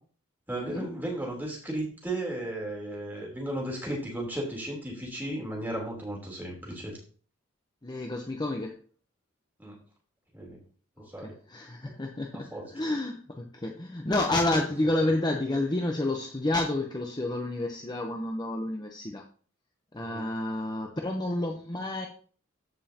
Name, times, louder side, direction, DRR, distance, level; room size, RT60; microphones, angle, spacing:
voice 1, 0.5-6.9 9.6-9.8 10.3-10.6 11.1-11.3 11.8-11.9 12.5-12.6 20.0-20.3, right 1 dB, 10° right, -2 dB, 3.2 m, -35 dB
voice 2, 7.8-8.8 11.0-19.2 19.9-22.1, left 2 dB, 20° left, 2 dB, 0.7 m, -30 dB
14.0 x 5.5 x 2.8 m, 0.42 s
head